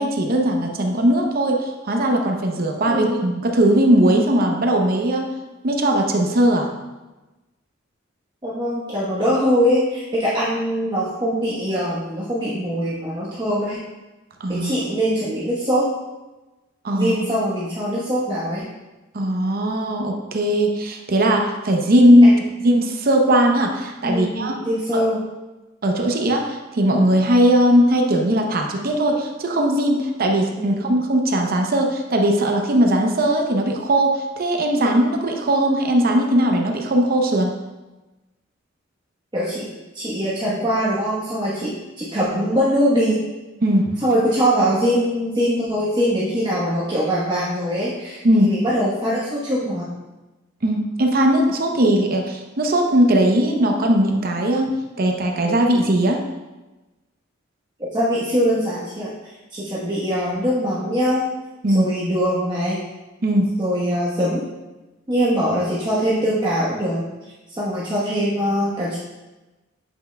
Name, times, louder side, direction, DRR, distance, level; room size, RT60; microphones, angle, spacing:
voice 1, 0.0-5.3 5.6-6.7 14.4-14.7 16.8-17.1 19.1-22.3 22.6-24.5 24.9-25.0 25.8-37.5 43.6-43.9 48.2-48.5 50.6-54.7 55.0-56.2 61.6-61.9 63.2-63.5, right 1 dB, 50° right, 2 dB, 0.7 m, -18 dB
voice 2, 2.9-3.2 8.4-13.8 14.5-15.9 16.9-18.7 22.2-22.3 24.0-25.2 30.5-30.9 39.3-39.6 39.9-43.2 44.0-49.9 57.9-59.1 59.5-61.2 61.7-62.8 63.6-64.4 65.1-67.0 67.5-69.0, equal, 20° right, -8 dB, 1.1 m, -22 dB
7.9 x 5.7 x 2.2 m, 1.1 s
head